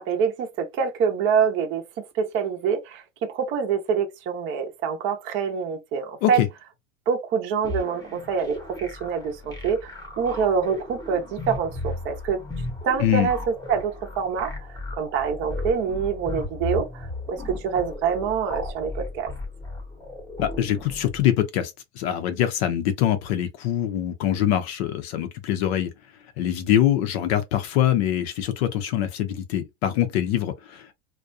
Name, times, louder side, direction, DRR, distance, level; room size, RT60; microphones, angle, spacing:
voice 1, 0.0-1.8 2.1-3.0 3.3-6.4 7.1-12.4 12.8-13.4 13.7-14.5 15.0-17.0 17.3-19.3, right 6 dB, 30° right, 0.7 m, -25 dB
sound 1, 7.6-21.3, left 2 dB, 10° left, 0.9 m, -35 dB
voice 2, 13.0-13.3 20.4-25.9 26.4-30.9, left 11 dB, 55° left, 0.6 m, -24 dB
2.4 x 2.2 x 2.5 m
supercardioid pair, 140°, 39 cm